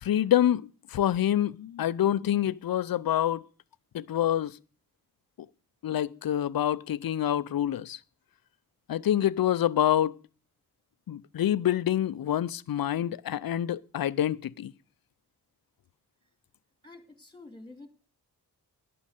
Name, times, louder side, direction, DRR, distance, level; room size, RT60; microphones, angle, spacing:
voice 1, 0.0-3.5 3.9-4.6 5.4-5.5 5.8-8.0 8.9-10.2 11.1-14.7, left 11 dB, 60° left, 0.6 m, -27 dB
voice 2, 16.8-17.9, left 2 dB, 10° left, 2.5 m, -48 dB
11.5 x 8.8 x 6.6 m
cardioid pair, 80°, 40 cm